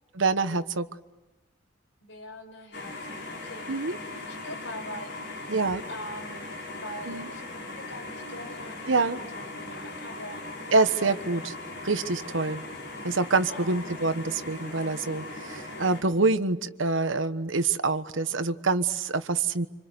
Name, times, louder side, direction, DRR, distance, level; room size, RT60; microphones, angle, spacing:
voice 1, 0.1-0.9 3.7-4.0 5.5-5.8 7.1-7.3 8.9-9.2 10.7-11.5 11.8-12.6 13.0-19.7, right 3 dB, 85° right, 11 dB, 1.2 m, -26 dB
voice 2, 2.0-3.7 4.3-5.1 5.9-6.5 6.8-7.4 7.7-10.4 13.5-13.9, left 1 dB, 75° left, 3 dB, 5.8 m, -42 dB
sound 1, 2.7-16.0, left 2 dB, 55° left, 5.9 m, -39 dB
27.5 x 26.5 x 8.0 m, 1.1 s
head